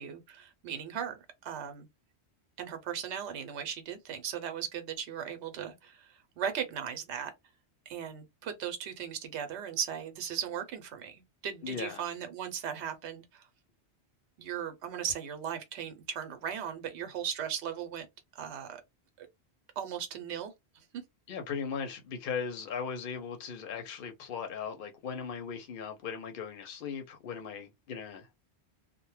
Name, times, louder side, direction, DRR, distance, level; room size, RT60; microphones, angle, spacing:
voice 1, 0.0-1.9 2.6-7.3 7.9-13.4 14.4-18.1 18.4-18.8 19.2-19.3 19.8-20.5 20.9-21.0, right 8 dB, 90° right, 0.9 m, -37 dB
voice 2, 11.6-12.0 21.3-28.3, left 6 dB, 60° left, 0.7 m, -38 dB
2.1 x 2.0 x 3.1 m
omnidirectional pair, 1.1 m